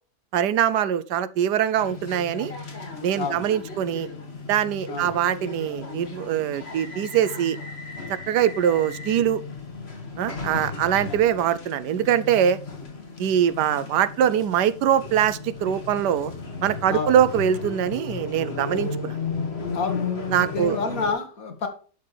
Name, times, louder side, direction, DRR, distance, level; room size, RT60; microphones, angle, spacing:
voice 1, 0.3-2.5 3.0-4.1 4.5-7.6 8.1-9.4 10.2-12.6 13.2-16.3 16.6-19.2 20.3-20.8, right 9 dB, 85° right, 1.3 m, -23 dB
sound 1, 1.8-21.1, left 4 dB, 40° left, 2.2 m, -35 dB
voice 2, 3.2-3.5 4.9-5.1 11.1-11.2 16.9-17.2 19.7-20.1 20.5-21.7, left 5 dB, 60° left, 2.2 m, -29 dB
11.0 x 6.7 x 3.3 m
omnidirectional pair, 1.7 m